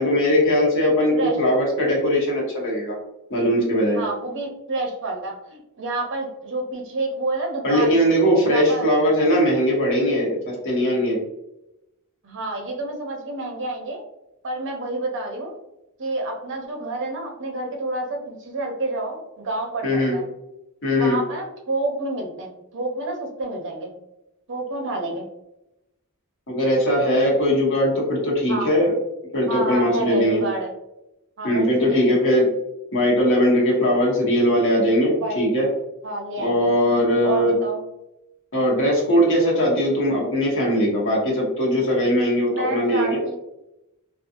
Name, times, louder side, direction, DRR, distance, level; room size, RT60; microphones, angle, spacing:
voice 1, 0.0-3.0 3.3-4.0 7.6-11.2 19.8-20.2 20.8-21.2 26.5-28.9 29.3-30.4 31.4-32.5 32.9-35.7 36.4-37.6 38.5-43.2, equal, 60° left, -3 dB, 1.0 m, -20 dB
voice 2, 3.9-8.0 8.5-8.9 12.2-14.0 14.4-15.5 16.0-19.2 19.4-20.2 21.0-23.9 24.5-25.3 28.5-28.7 29.5-30.7 31.4-32.2 35.2-35.5 36.0-36.7 37.2-37.8 42.5-43.4, right 2 dB, 60° right, 2 dB, 0.6 m, -29 dB
2.6 x 2.3 x 2.5 m, 0.89 s
head